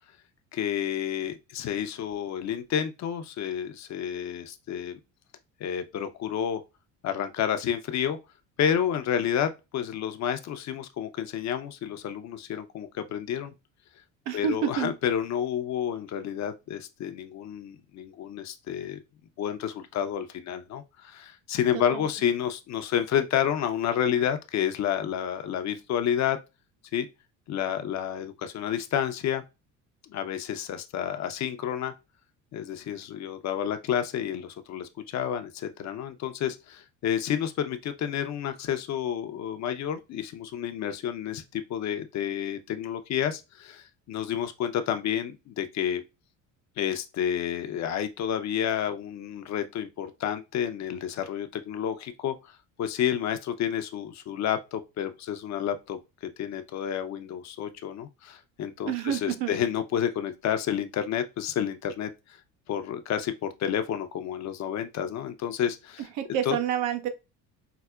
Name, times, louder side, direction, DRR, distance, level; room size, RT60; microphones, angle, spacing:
voice 1, 0.5-5.0 5.6-6.6 7.0-8.2 8.6-13.5 14.3-19.0 19.4-26.4 26.9-27.1 27.5-29.4 30.1-31.9 32.5-46.0 46.8-56.0 56.4-62.1 62.7-66.0 66.5-66.6, left 9 dB, 45° left, 0.6 m, -30 dB
voice 2, 14.3-14.9 21.9-22.1 58.9-59.5 66.2-67.1, right 9 dB, 80° right, 0.7 m, -28 dB
4.7 x 2.0 x 2.2 m
supercardioid pair, 80°, 38 cm